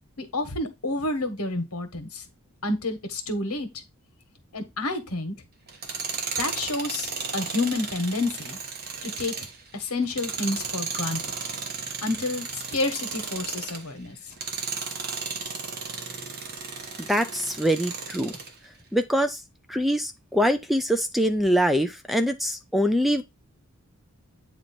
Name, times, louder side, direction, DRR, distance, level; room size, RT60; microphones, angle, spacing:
voice 1, 0.2-2.2 2.6-3.7 4.5-5.3 6.4-8.6 9.0-9.3 9.7-11.2 12.0-14.1, left 2 dB, 75° left, 1.4 m, -29 dB
Tools, 5.7-13.9 14.3-18.5, right 5 dB, 45° right, 1.1 m, -34 dB
voice 2, 17.1-18.3 18.9-19.4 19.7-23.2, equal, ahead, 0.4 m, -24 dB
8.8 x 3.0 x 4.2 m
head